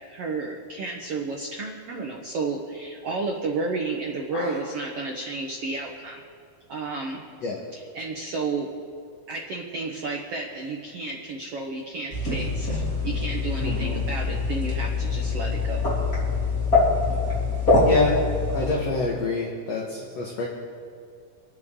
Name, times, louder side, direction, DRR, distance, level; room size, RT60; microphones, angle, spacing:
voice 1, 0.1-6.2 6.7-7.2 7.9-8.7 9.3-12.7 13.0-15.8, right 3 dB, 80° right, 1 dB, 1.3 m, -31 dB
sound 1, 12.1-18.7, left 3 dB, 25° left, 3.9 m, -24 dB
voice 2, 13.6-14.0 17.8-18.2 18.5-20.5, left 3 dB, 55° left, -1 dB, 2.1 m, -26 dB
27.5 x 9.5 x 3.8 m, 2.4 s
omnidirectional pair, 4.5 m